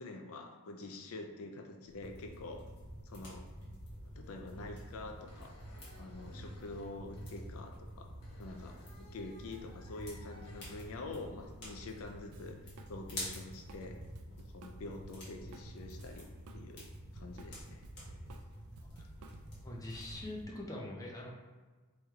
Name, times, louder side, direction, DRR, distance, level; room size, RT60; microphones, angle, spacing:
voice 1, 0.0-2.7 3.0-3.5 4.2-5.5 6.0-8.1 8.4-12.6 12.9-14.0 14.4-16.3 16.5-16.8 17.1-17.8, left 2 dB, 65° left, 4 dB, 0.4 m, -46 dB
sound 1, 1.9-20.5, equal, 50° left, 1.4 m, -48 dB
sound 2, 5.3-7.3 8.2-10.9 11.6-11.8 14.7-14.8 15.6-16.0 17.0-17.2, left 1 dB, 90° left, 1.1 m, -60 dB
Drum kit, 12.3-12.9 13.2-16.6 16.9-19.7, right 4 dB, 75° right, 0.4 m, -56 dB
voice 2, 19.6-21.3, left 1 dB, 15° left, -3 dB, 0.5 m, -43 dB
3.1 x 3.1 x 3.6 m, 1.4 s
head